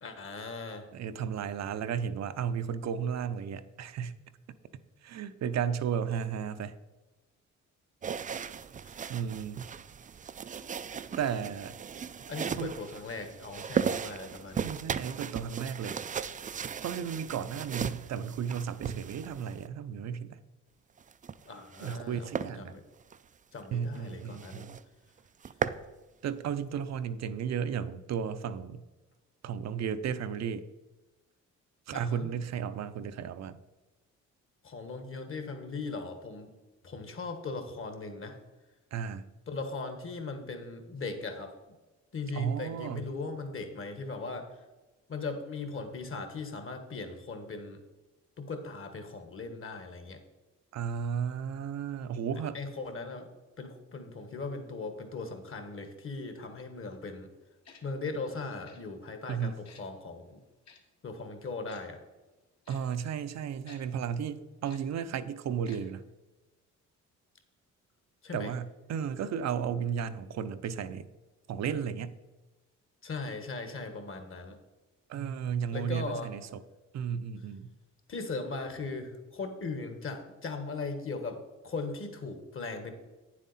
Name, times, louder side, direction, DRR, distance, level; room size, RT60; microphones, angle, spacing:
voice 1, 0.0-0.9 8.8-8.9 12.3-14.7 21.4-22.8 23.5-24.7 31.9-32.3 34.6-36.5 36.8-38.4 39.5-41.5 42.1-44.5 45.1-47.8 48.4-50.2 52.5-53.3 53.6-57.3 57.8-60.4 61.0-62.0 68.2-68.5 73.0-74.6 75.7-76.3 78.1-82.9, left 3 dB, 45° left, 7 dB, 1.5 m, -39 dB
voice 2, 0.9-4.2 5.0-6.8 9.1-9.7 10.5-10.6 11.2-11.8 12.5-12.7 14.5-16.0 16.8-20.4 21.8-22.8 23.7-24.8 26.2-28.8 29.4-30.7 31.9-33.6 38.9-39.3 42.3-43.0 50.7-52.6 59.3-59.5 62.7-66.0 68.3-71.1 71.5-72.1 75.1-76.6 76.9-77.7, right 7 dB, 60° right, 12 dB, 0.6 m, -34 dB
sound 1, 8.0-19.7 21.0-22.0 22.3-22.5 23.0-23.2 23.6-23.7 24.0-24.1 24.4-24.8 25.2-25.8, right 7 dB, 25° right, 0.4 m, -37 dB
Tick-tock, 57.6-57.8 58.6-58.8 59.6-59.8 60.6-60.8 61.7-61.8 62.6-62.8 63.7-63.8 64.6-64.8 65.6-65.8 66.1-66.2, left 5 dB, 65° left, 1.6 m, -53 dB
9.1 x 7.5 x 4.2 m, 1.1 s
cardioid pair, 90°, 30 cm